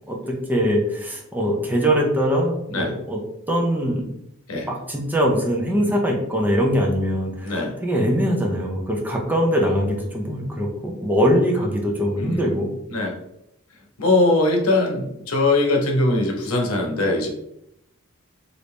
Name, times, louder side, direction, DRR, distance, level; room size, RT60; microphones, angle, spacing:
voice 1, 0.5-3.2 3.5-4.1 4.5-12.7, equal, 10° right, 0 dB, 0.6 m, -22 dB
voice 2, 12.2-12.5 12.9-13.2 14.0-17.3, left 2 dB, 80° left, 1 dB, 0.9 m, -21 dB
3.1 x 2.6 x 3.4 m, 0.79 s
head